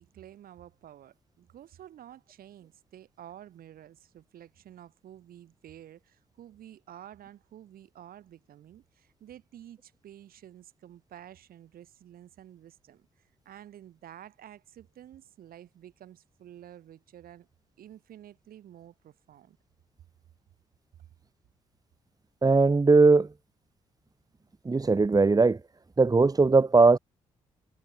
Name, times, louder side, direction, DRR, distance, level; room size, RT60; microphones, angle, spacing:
voice 1, 0.0-17.5 17.8-19.6, right 11 dB, 65° right, 6.2 m, -50 dB
voice 2, 22.4-23.3 24.6-25.6 26.0-27.0, right 3 dB, 20° right, 1.1 m, -19 dB
hypercardioid pair, 40°, 16 cm